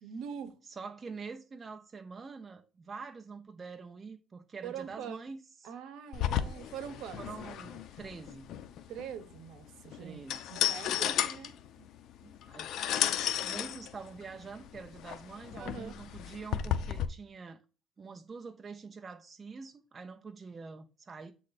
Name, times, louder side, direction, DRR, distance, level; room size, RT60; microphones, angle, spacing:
voice 1, 0.0-0.6 4.6-5.3 5.6-7.2 8.9-10.2 10.5-11.5 15.5-16.0, right 8 dB, 75° right, 1.0 m, -43 dB
voice 2, 0.8-5.4 7.2-8.5 10.0-10.4 11.8-11.9 12.2-12.8 13.3-17.6 18.0-21.3, right 4 dB, 25° right, 0.6 m, -45 dB
sound 1, 6.1-17.1, left 10 dB, 65° left, 0.5 m, -34 dB
7.7 x 3.2 x 4.1 m
cardioid pair, 135°, 0 cm